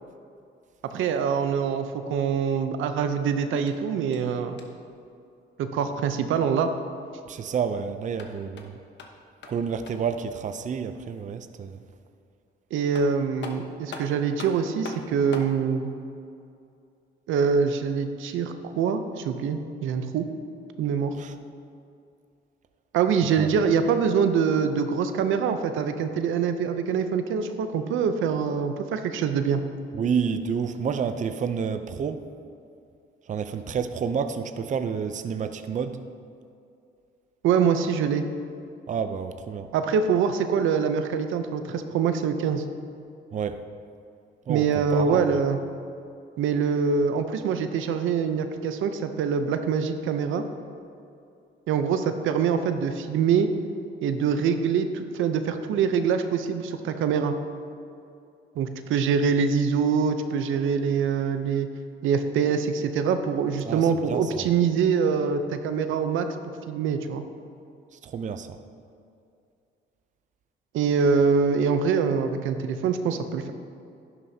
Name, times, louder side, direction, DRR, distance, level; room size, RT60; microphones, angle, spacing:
voice 1, 0.9-4.6 5.6-6.7 12.7-15.9 17.3-20.3 20.8-21.1 22.9-29.6 37.4-38.2 39.7-42.6 44.5-45.6 46.4-50.4 51.7-53.5 54.0-57.3 58.6-61.7 62.0-66.3 66.7-67.2 70.7-73.5, right 6 dB, 80° right, 8 dB, 0.7 m, -24 dB
sound 1, 3.6-4.9 8.0-10.2 12.5-12.6 12.9-15.6, left 4 dB, 65° left, 1.1 m, -43 dB
voice 2, 7.3-8.8 9.5-11.8 21.2-21.3 23.4-23.5 29.9-32.2 33.3-36.0 38.9-39.7 43.3-43.6 44.5-45.4 63.6-64.5 67.9-68.6, right 6 dB, 40° right, 9 dB, 0.5 m, -29 dB
11.0 x 11.0 x 2.8 m, 2.5 s
cardioid pair, 90°, 20 cm